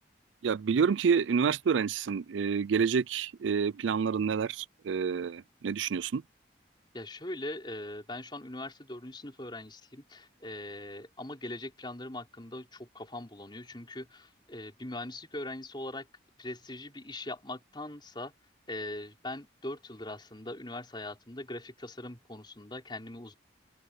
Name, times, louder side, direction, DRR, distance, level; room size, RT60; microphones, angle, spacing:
voice 1, 0.4-6.2, right 6 dB, 85° right, 0.4 m, -28 dB
voice 2, 6.9-16.1 16.4-18.3 18.7-23.3, left 1 dB, 25° left, 4.4 m, -41 dB
open air
head